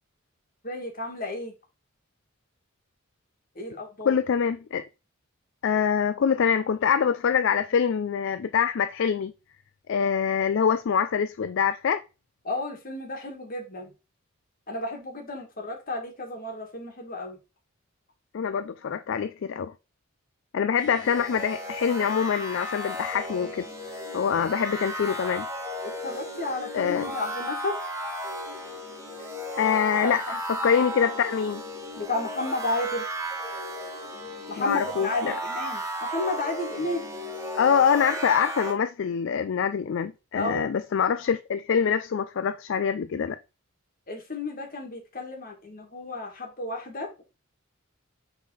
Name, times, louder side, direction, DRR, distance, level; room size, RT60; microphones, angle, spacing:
voice 1, 0.6-1.5 3.6-4.2 12.4-13.9 14.7-17.4 24.3-24.5 26.0-27.7 30.0-30.4 32.0-33.1 34.5-37.0 40.4-40.7 44.1-47.2, left 2 dB, 45° left, 2.1 m, -32 dB
voice 2, 4.0-4.8 5.6-9.3 9.9-12.0 18.3-19.7 20.5-23.7 24.1-25.5 26.7-27.1 29.6-30.2 30.5-31.6 34.6-35.3 37.6-43.4, left 7 dB, 60° left, 0.4 m, -25 dB
sound 1, 20.8-38.7, equal, 15° right, 1.5 m, -35 dB
7.3 x 4.1 x 4.0 m
head